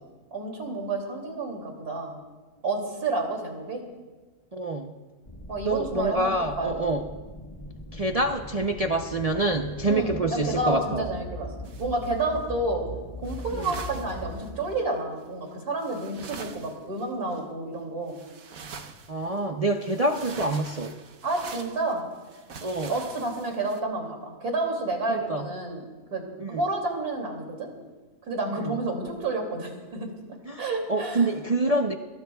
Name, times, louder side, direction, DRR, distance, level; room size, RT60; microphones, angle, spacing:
voice 1, 0.3-2.1 2.6-3.8 5.5-7.0 9.9-11.5 11.8-12.8 13.2-18.2 21.2-22.1 22.9-25.8 26.1-26.2 26.5-27.7 28.3-30.1 30.6-31.3, right 2 dB, 90° right, 1 dB, 3.3 m, -30 dB
voice 2, 4.5-4.9 5.6-7.1 7.9-11.1 13.5-13.7 19.1-20.9 22.6-22.9 25.1-25.5 26.4-26.6 28.5-28.6 30.4-30.6 30.9-31.9, right 2 dB, 45° right, 3 dB, 0.5 m, -26 dB
Haunting Ambiance, 5.3-14.4, left 1 dB, 20° left, 1.6 m, -40 dB
sound 1, 11.6-12.4 13.2-14.8 15.5-15.6 15.8-17.4 18.1-19.4 19.7-23.8, right 5 dB, 70° right, 1.4 m, -44 dB
27.5 x 20.0 x 2.3 m, 1.3 s
omnidirectional pair, 1.6 m